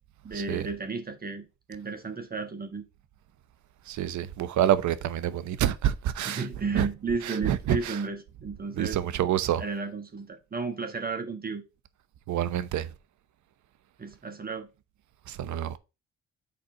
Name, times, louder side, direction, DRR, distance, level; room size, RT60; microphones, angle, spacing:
voice 1, 0.2-2.8 6.2-9.0 9.6-11.6 14.0-14.7, right 4 dB, 30° right, 1.5 m, -33 dB
voice 2, 3.9-6.4 6.7-6.9 7.3-8.0 8.8-9.6 12.3-12.9 15.3-15.8, right 11 dB, 70° right, 0.9 m, -27 dB
6.9 x 4.2 x 5.1 m
cardioid pair, 90°, 30 cm